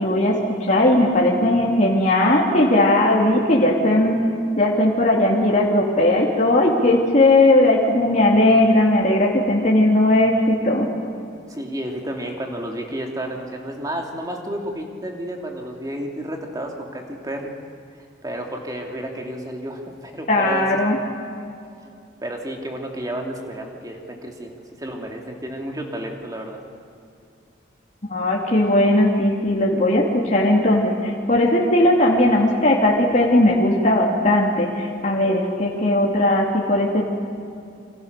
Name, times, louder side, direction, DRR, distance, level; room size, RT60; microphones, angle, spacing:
voice 1, 0.0-4.2 4.6-10.9 20.3-21.0 28.1-37.0, left 1 dB, 40° left, -2 dB, 2.8 m, -18 dB
voice 2, 11.5-17.5 18.2-20.7 22.2-26.6, right 1 dB, 20° right, 2 dB, 2.7 m, -31 dB
28.0 x 25.5 x 6.8 m, 2.5 s
head